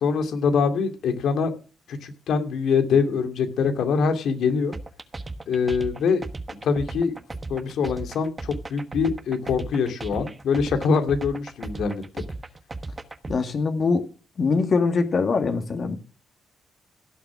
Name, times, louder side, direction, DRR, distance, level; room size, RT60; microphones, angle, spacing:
voice 1, 0.0-1.5 1.9-4.7 5.5-6.2 6.6-7.1 7.5-12.2, left 5 dB, 80° left, 7 dB, 2.4 m, -24 dB
sound 1, 4.7-13.4, right 3 dB, 20° right, 1.2 m, -36 dB
voice 2, 13.3-14.0 14.4-16.0, left 4 dB, 50° left, 6 dB, 2.1 m, -23 dB
17.0 x 7.1 x 6.2 m, 0.36 s
cardioid pair, 110°, 0 cm